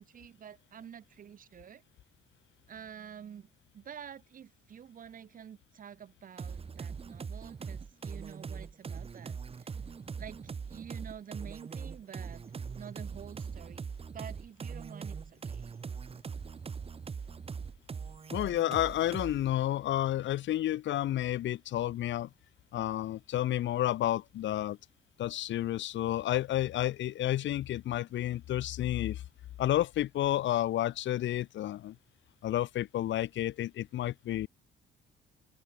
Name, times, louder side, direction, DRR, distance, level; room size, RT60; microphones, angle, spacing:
voice 1, 0.0-1.8 2.7-9.8 10.2-12.5 12.7-13.9 14.1-15.8, right 8 dB, 45° right, 2.4 m, -49 dB
sound 1, 6.4-19.5, right 6 dB, 30° right, 2.0 m, -41 dB
voice 2, 18.3-22.3 22.7-24.8 25.2-29.2 29.6-31.9 32.4-34.5, left 13 dB, 70° left, 2.1 m, -31 dB
open air
cardioid pair, 140°, 20 cm